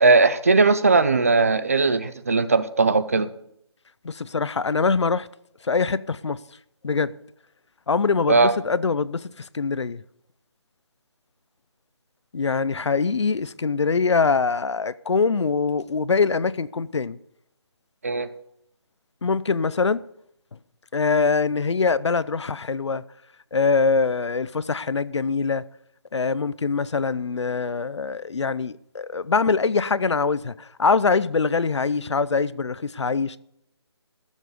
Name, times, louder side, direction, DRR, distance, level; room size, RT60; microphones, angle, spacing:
voice 1, 0.0-3.3 8.3-8.5 18.0-18.3, right 3 dB, 30° right, 0.6 m, -18 dB
voice 2, 4.0-5.3 5.6-6.4 6.8-7.1 7.9-10.0 12.3-17.2 19.2-20.0 20.9-23.0 23.5-25.6 26.1-33.4, left 4 dB, 80° left, 0.7 m, -23 dB
15.0 x 7.3 x 6.7 m
hypercardioid pair, 175°, 15 cm